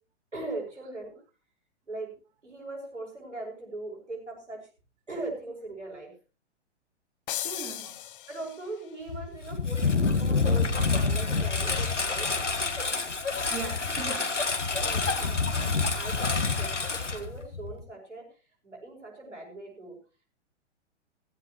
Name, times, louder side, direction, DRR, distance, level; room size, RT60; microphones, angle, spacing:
voice 1, 0.3-1.2 1.9-2.1 2.4-4.6 5.1-6.1 7.8-7.9 8.3-12.4 14.8-18.3 18.6-20.0, right 2 dB, 85° right, 0 dB, 7.3 m, -40 dB
sound 1, 7.3-8.9, left 12 dB, 50° left, 0.9 m, -37 dB
voice 2, 7.4-7.9 13.5-14.7, right 6 dB, 25° right, 0 dB, 3.9 m, -40 dB
Engine, 9.1-17.8, left 4 dB, 85° left, 2.0 m, -27 dB
15.5 x 15.5 x 3.1 m, 0.33 s
figure-of-eight pair, 115°, 35 cm